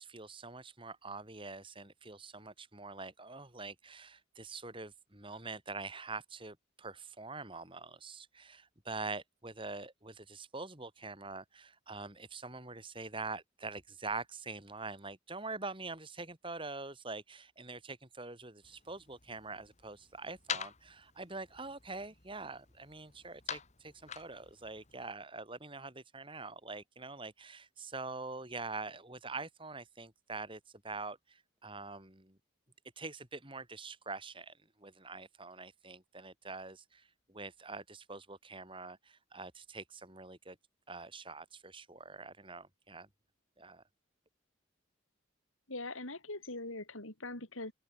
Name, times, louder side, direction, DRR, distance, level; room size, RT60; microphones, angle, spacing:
voice 1, 0.0-32.4 33.0-40.6 40.9-43.1 43.6-43.8, right 3 dB, 25° right, 3.9 m, -45 dB
sound 1, 18.6-25.1, left 7 dB, 35° left, 1.7 m, -46 dB
voice 2, 45.7-47.7, left 2 dB, 90° left, 6.0 m, -42 dB
open air
head